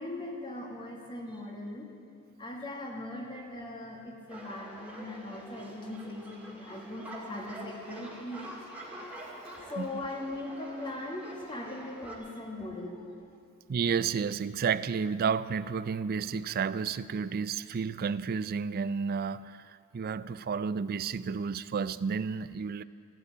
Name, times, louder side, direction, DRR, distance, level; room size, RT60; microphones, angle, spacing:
voice 1, 0.0-1.9 2.4-8.6 9.7-13.1, left 1 dB, 20° left, 1.8 m, -40 dB
sound 1, 4.3-12.2, right 1 dB, 5° right, 2.2 m, -46 dB
voice 2, 13.7-22.8, right 6 dB, 45° right, 0.4 m, -31 dB
15.0 x 8.3 x 9.7 m
head